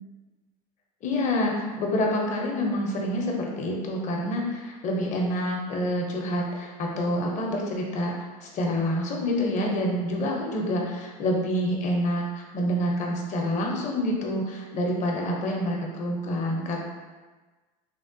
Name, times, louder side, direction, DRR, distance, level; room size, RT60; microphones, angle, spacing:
voice 1, 1.0-16.8, left 1 dB, 40° left, 0 dB, 0.6 m, -27 dB
3.5 x 2.1 x 2.5 m, 1.3 s
supercardioid pair, 105°, 19 cm